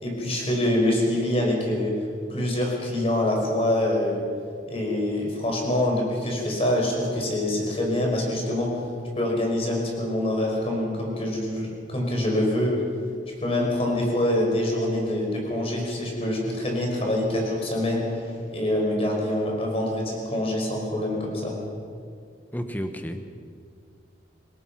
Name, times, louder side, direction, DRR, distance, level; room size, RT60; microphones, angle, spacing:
voice 1, 0.0-2.0 2.3-4.2 4.7-8.9 9.2-12.7 13.4-21.6, left 1 dB, 30° left, 0 dB, 5.2 m, -25 dB
voice 2, 22.5-23.2, equal, 10° left, 6 dB, 1.2 m, -31 dB
26.5 x 17.5 x 5.9 m, 2.3 s
head